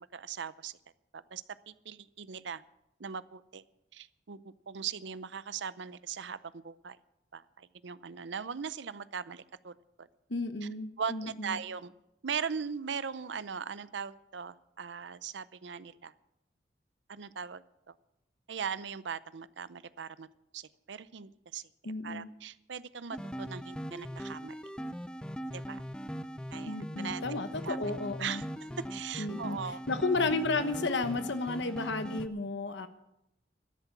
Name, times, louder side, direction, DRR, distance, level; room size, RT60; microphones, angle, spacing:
voice 1, 0.1-0.8 1.1-2.6 3.0-3.6 3.9-7.0 7.3-10.1 10.6-10.7 11.0-11.9 12.2-16.1 17.1-17.9 18.5-20.3 20.5-24.6 25.5-25.8 26.5-27.8 28.2-28.4 28.9-29.8, right 6 dB, 80° right, 16 dB, 0.6 m, -40 dB
voice 2, 10.3-11.6 21.8-22.3 26.7-28.4 29.2-29.6 29.9-32.9, left 3 dB, 80° left, 10 dB, 1.1 m, -33 dB
sound 1, 23.1-32.3, equal, 5° left, 0.5 m, -40 dB
13.0 x 10.5 x 7.2 m, 0.87 s
head